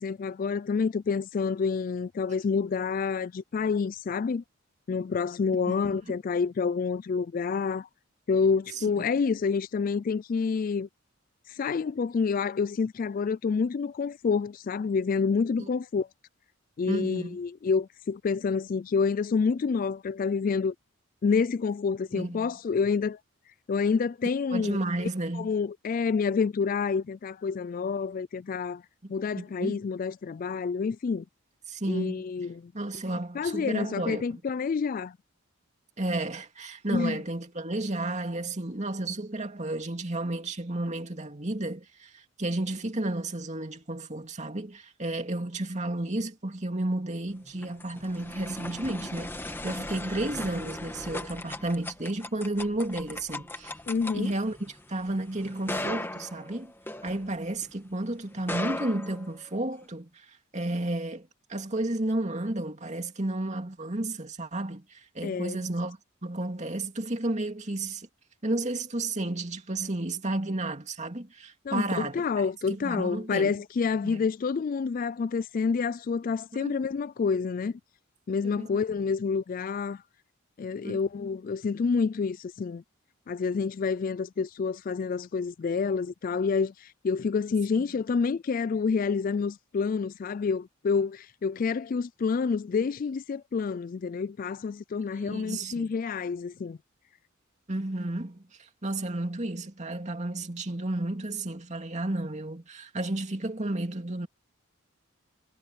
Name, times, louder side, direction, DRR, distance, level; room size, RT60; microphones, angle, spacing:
voice 1, 0.0-4.4 4.9-7.9 8.3-10.9 11.5-16.1 16.8-20.7 21.2-23.2 23.7-25.1 25.4-28.8 29.1-31.2 31.9-32.7 33.3-35.2 36.9-37.2 53.9-54.3 65.2-65.6 71.7-77.8 78.3-80.0 80.6-82.8 83.3-96.8, left 5 dB, 40° left, 0.3 m, -28 dB
voice 2, 8.7-9.0 15.6-15.7 16.9-17.4 22.1-22.5 24.5-25.5 29.0-29.1 29.4-29.8 31.7-32.2 32.7-34.4 36.0-53.7 54.1-56.7 57.0-68.1 68.4-72.2 72.7-73.6 74.0-74.2 76.5-76.8 78.4-78.8 80.8-81.0 87.8-87.9 95.1-95.9 97.7-98.4 98.8-104.3, right 2 dB, 35° right, 2.5 m, -32 dB
sound 1, 47.4-57.7 58.3-59.8, left 1 dB, 10° left, 1.7 m, -38 dB
head